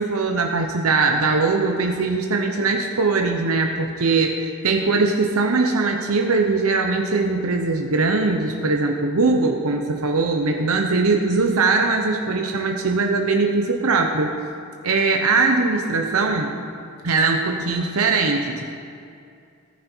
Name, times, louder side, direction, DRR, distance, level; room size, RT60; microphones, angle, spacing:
voice 1, 0.0-14.4 14.8-16.6 17.0-18.7, right 3 dB, 85° right, 3 dB, 0.9 m, -21 dB
14.5 x 9.4 x 4.5 m, 2.4 s
head